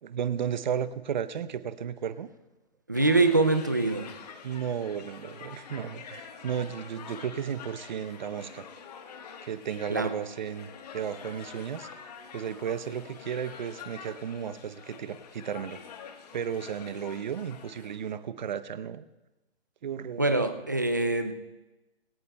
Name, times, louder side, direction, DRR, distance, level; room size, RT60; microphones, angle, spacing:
voice 1, 0.0-2.3 4.4-8.7 9.4-11.9 12.3-15.8 16.3-19.0 19.8-20.3, right 8 dB, 45° right, 14 dB, 0.7 m, -34 dB
sound 1, 2.9-18.1, left 6 dB, 40° left, 1.3 m, -46 dB
voice 2, 2.9-4.1 9.9-10.1 20.2-21.3, right 2 dB, 20° right, 8 dB, 0.3 m, -24 dB
20.0 x 17.5 x 2.2 m, 1.1 s
hypercardioid pair, 150°, 32 cm